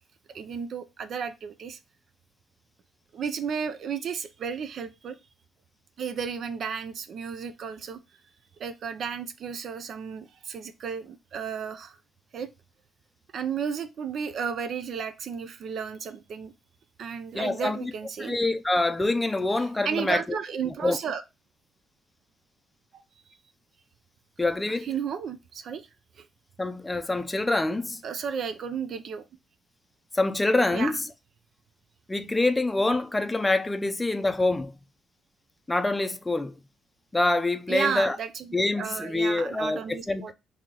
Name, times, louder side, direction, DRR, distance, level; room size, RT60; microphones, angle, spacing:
voice 1, 0.3-1.8 3.1-5.2 6.0-8.0 8.6-12.0 12.3-12.5 13.3-16.5 17.0-18.4 19.8-21.2 22.9-23.0 24.8-25.9 26.2-26.3 28.0-29.2 30.7-30.9 37.7-40.3, right 7 dB, 60° right, 0.4 m, -33 dB
voice 2, 17.3-17.9 18.2-20.2 20.7-21.0 24.4-24.9 26.6-28.0 30.1-31.0 32.1-34.7 35.7-36.5 37.1-38.2 38.5-40.2, left 2 dB, 15° left, 0.5 m, -26 dB
3.0 x 2.8 x 3.7 m
cardioid pair, 90°, 0 cm